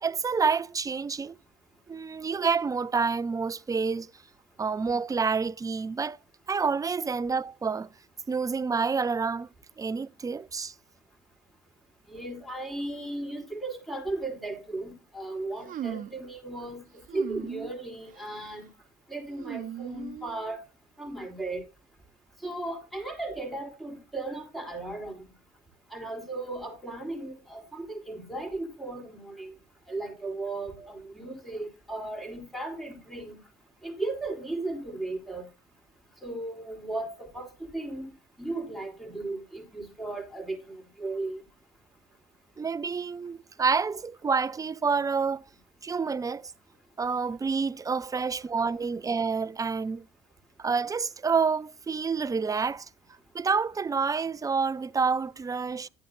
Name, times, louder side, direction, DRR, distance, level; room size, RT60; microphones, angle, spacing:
voice 1, 0.0-1.4 1.9-4.1 4.6-6.2 6.5-7.9 8.3-9.5 9.8-10.7 30.8-30.9 42.6-45.4 45.8-46.5 47.0-50.1 50.6-52.9 53.3-55.9, right 5 dB, 20° right, 0.5 m, -28 dB
voice 2, 12.1-16.8 17.1-18.7 19.1-20.6 21.0-21.6 22.4-25.2 25.9-29.5 29.9-33.4 33.8-35.4 36.2-38.1 38.4-41.4 48.1-48.2, right 2 dB, ahead, 3.7 m, -36 dB
sound 1, 15.6-16.3 17.1-17.7 18.1-18.5 19.4-20.6, right 10 dB, 55° right, 0.9 m, -38 dB
11.5 x 8.9 x 2.6 m
cardioid pair, 110°, 17 cm